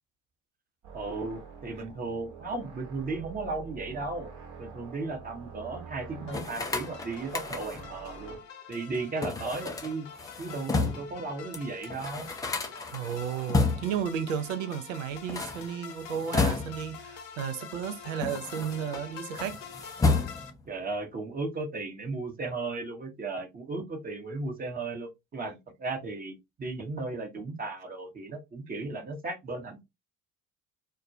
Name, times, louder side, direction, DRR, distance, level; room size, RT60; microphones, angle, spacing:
sound 1, 0.8-8.4, right 5 dB, 45° right, 1.0 m, -46 dB
voice 1, 0.9-4.3 4.6-8.4 8.7-10.1 10.4-12.3 15.6-15.7 20.6-29.8, right 3 dB, 25° right, 0.8 m, -35 dB
sound 2, 6.3-20.5, left 7 dB, 75° left, 0.6 m, -46 dB
sound 3, 6.3-8.0 9.2-11.2 11.5-11.6 11.8-14.1 15.1-17.0 17.7-19.0 19.3-20.7, left 3 dB, 10° left, 0.4 m, -31 dB
voice 2, 12.9-19.6, right 8 dB, 75° right, 0.5 m, -33 dB
2.2 x 2.1 x 2.6 m
figure-of-eight pair, 60°, 38 cm